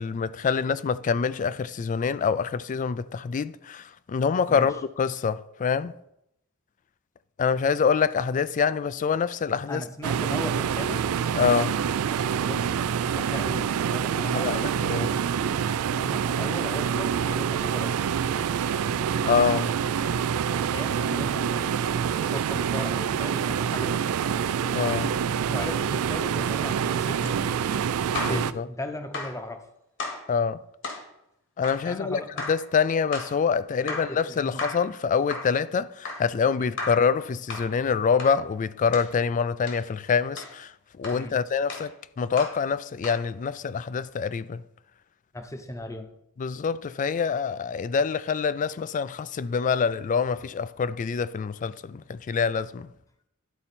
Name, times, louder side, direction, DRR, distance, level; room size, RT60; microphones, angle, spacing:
voice 1, 0.0-6.0 7.4-9.8 11.3-11.8 14.3-15.2 19.2-19.7 24.6-25.1 28.2-28.7 30.3-30.6 31.6-32.2 32.5-44.6 46.4-52.9, left 6 dB, 35° left, 0.3 m, -26 dB
voice 2, 4.5-4.8 9.7-11.0 12.4-12.7 13.0-14.6 15.9-18.0 20.7-24.2 25.5-27.7 28.2-29.7 31.9-32.5 33.9-34.6 36.6-36.8 41.1-41.4 45.3-46.1, left 1 dB, 15° left, 0.8 m, -37 dB
sound 1, 10.0-28.5, right 7 dB, 80° right, 0.3 m, -26 dB
sound 2, 26.3-28.5 29.1-29.4 30.0-30.3 30.8-31.1 31.6-31.9 32.4-32.7 33.1-33.4 33.9-34.2 34.6-34.9 35.3-35.6 36.0-36.3 36.8-37.1 37.5-37.7 38.2-38.4 38.9-39.1 39.7-39.8 40.4-40.6 41.0-41.3 41.7-41.9 42.4-42.6 43.0-43.2, left 3 dB, 60° left, 1.8 m, -36 dB
12.0 x 4.4 x 4.1 m
head